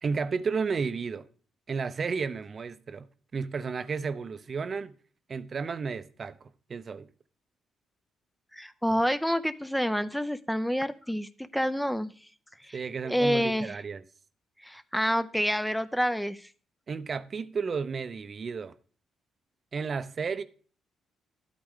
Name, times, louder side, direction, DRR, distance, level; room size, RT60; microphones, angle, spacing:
voice 1, 0.0-1.3 1.7-3.1 3.3-4.9 5.3-7.1 12.7-14.0 16.9-18.7 19.7-20.4, right 5 dB, 40° right, 0.6 m, -32 dB
voice 2, 8.5-12.1 12.6-12.7 13.0-13.8 14.6-16.5, equal, ahead, 0.5 m, -28 dB
12.0 x 8.7 x 3.6 m
cardioid pair, 90°, 0 cm